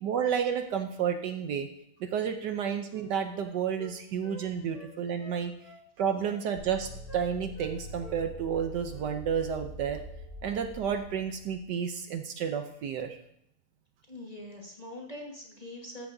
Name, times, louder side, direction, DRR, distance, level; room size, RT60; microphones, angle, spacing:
voice 1, 0.0-1.7 2.0-5.5 6.0-10.0 10.4-13.2, right 7 dB, 70° right, 7 dB, 1.2 m, -31 dB
Wind instrument woodwind instrument, 2.5-4.4 4.7-5.8 6.2-6.8 7.1-7.7 8.0-8.2 8.5-9.1 9.4-9.6, right 1 dB, 65° left, 5.0 m, -49 dB
sound 1, 6.5-11.5, equal, 20° right, 3.3 m, -44 dB
voice 2, 14.1-16.1, left 1 dB, 20° left, -1 dB, 1.4 m, -43 dB
13.5 x 9.3 x 2.7 m, 0.76 s
omnidirectional pair, 2.1 m